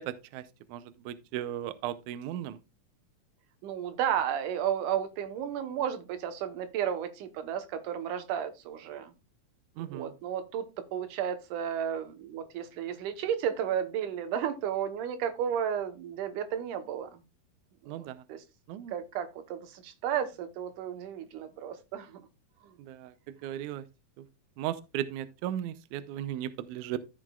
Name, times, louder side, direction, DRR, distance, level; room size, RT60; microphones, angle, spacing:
voice 1, 0.0-2.6 9.8-10.1 17.9-18.2 18.7-19.0 22.8-23.9 24.2-24.3 24.6-27.0, right 12 dB, 90° right, 1.8 m, -36 dB
voice 2, 3.6-9.1 9.9-17.2 18.0-18.4 18.9-22.2 22.6-22.7, right 9 dB, 70° right, 2.4 m, -33 dB
14.0 x 5.9 x 2.3 m
omnidirectional pair, 4.1 m